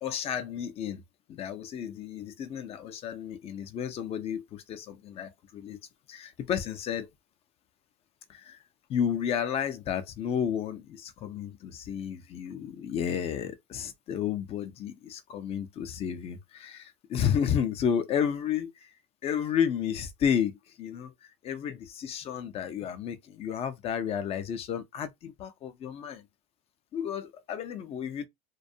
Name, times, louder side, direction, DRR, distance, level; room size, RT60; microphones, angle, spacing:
voice 1, 0.0-1.0 1.3-5.8 6.1-7.1 8.3-8.6 8.9-18.9 19.2-21.1 21.4-26.2 26.9-28.3, left 8 dB, 20° left, 0.3 m, -32 dB
2.4 x 2.2 x 2.6 m
supercardioid pair, 140°, 29 cm